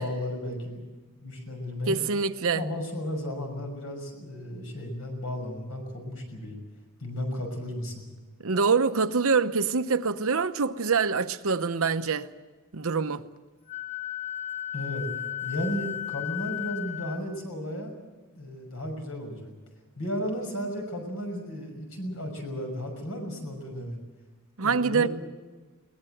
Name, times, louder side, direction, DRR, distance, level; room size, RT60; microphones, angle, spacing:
voice 1, 0.0-2.0 2.5-6.6 7.0-8.1 14.7-15.1 15.4-17.9 18.3-19.5 20.0-24.0 24.6-25.1, left 1 dB, 65° left, 6.0 m, -34 dB
voice 2, 1.9-2.6 8.4-12.3 12.7-13.2 24.6-25.1, right 5 dB, 65° right, 0.9 m, -25 dB
Wind instrument woodwind instrument, 13.7-17.2, left 12 dB, 35° left, 2.8 m, -34 dB
22.0 x 19.0 x 7.9 m
head